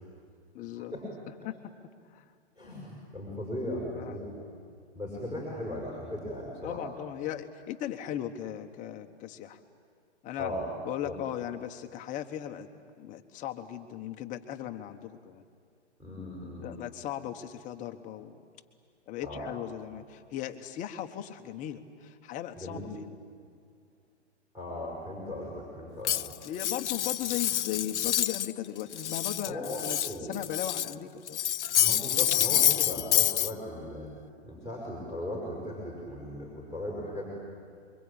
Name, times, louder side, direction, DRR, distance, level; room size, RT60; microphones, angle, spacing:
voice 1, 0.5-0.9 1.4-1.7 2.1-2.2 3.9-4.4 6.6-9.6 10.2-10.5 10.8-12.7 13.0-15.4 16.6-18.4 19.1-23.0 26.4-31.4, left 11 dB, 20° left, 6 dB, 1.3 m, -37 dB
voice 2, 2.6-4.3 4.9-6.8 10.4-10.7 11.0-11.2 16.0-16.7 19.2-19.5 22.6-22.9 24.5-26.3 29.4-30.3 31.8-34.1 34.4-37.3, left 1 dB, 10° right, -3 dB, 6.0 m, -37 dB
Cutlery silverware, 26.0-28.5 28.8-30.9 31.3-33.5, left 11 dB, 75° left, 0.6 m, -27 dB
27.0 x 23.5 x 8.8 m, 2.2 s
hypercardioid pair, 135°, 35 cm